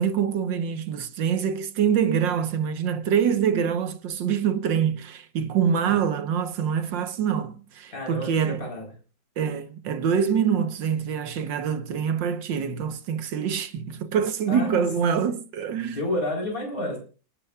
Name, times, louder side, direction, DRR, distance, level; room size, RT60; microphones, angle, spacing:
voice 1, 0.0-8.7 9.4-16.0, right 7 dB, 80° right, 1.7 m, -25 dB
voice 2, 7.9-8.8 14.5-14.8 15.9-17.0, left 1 dB, 50° left, 4.6 m, -30 dB
29.0 x 10.5 x 2.4 m
omnidirectional pair, 2.0 m